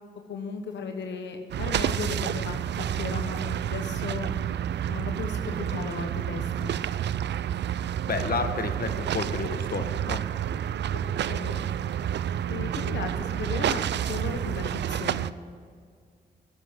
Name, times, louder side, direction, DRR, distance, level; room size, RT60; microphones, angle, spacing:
voice 1, 0.3-4.3 4.9-6.8 10.9-11.0 11.3-11.7 12.5-15.3, left 5 dB, 80° left, 5 dB, 1.1 m, -36 dB
sound 1, 1.5-15.3, right 10 dB, 75° right, 0.4 m, -29 dB
voice 2, 8.1-10.2, left 4 dB, 55° left, 8 dB, 1.3 m, -31 dB
14.0 x 8.1 x 8.8 m, 2.1 s
cardioid pair, 50°, 18 cm